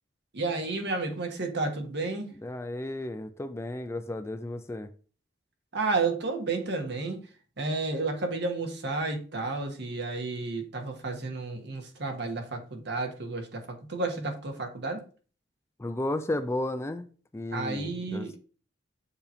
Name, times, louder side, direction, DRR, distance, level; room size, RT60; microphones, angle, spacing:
voice 1, 0.3-2.3 5.7-7.2 7.6-15.0 17.5-18.4, right 3 dB, 65° right, 1.3 m, -31 dB
voice 2, 2.4-4.9 15.8-17.1 17.3-18.4, left 1 dB, 15° left, 0.4 m, -33 dB
6.9 x 2.9 x 5.3 m
head